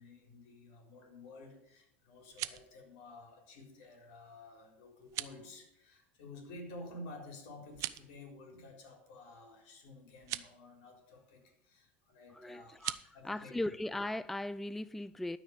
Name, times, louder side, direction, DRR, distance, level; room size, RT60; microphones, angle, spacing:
voice 1, 0.0-12.8 13.1-13.7, left 2 dB, 70° left, 3.9 m, -52 dB
sound 1, 2.1-2.7 5.0-5.4 7.7-8.1 10.2-10.5 12.7-13.1, right 16 dB, 55° right, 0.6 m, -40 dB
voice 2, 12.3-13.0 13.2-15.4, left 1 dB, 5° left, 0.3 m, -38 dB
12.5 x 5.2 x 7.8 m
supercardioid pair, 100°, 6 cm